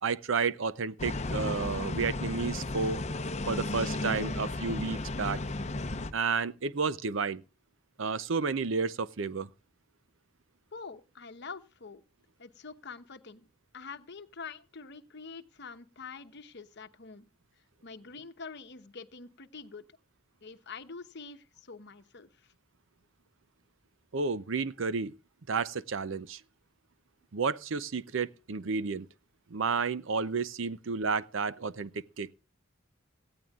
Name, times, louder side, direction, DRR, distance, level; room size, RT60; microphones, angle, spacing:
voice 1, 0.0-3.0 3.5-5.4 6.1-7.4 8.0-9.5 24.1-25.2 25.5-26.4 27.3-29.1 29.5-32.3, right 5 dB, 65° right, 0.6 m, -31 dB
sound 1, 1.0-6.1, left 2 dB, 35° left, 0.8 m, -34 dB
voice 2, 10.7-12.0 12.4-13.5 13.7-17.3 17.8-19.8 20.4-22.5, left 5 dB, 55° left, 1.0 m, -46 dB
18.0 x 14.0 x 2.4 m
head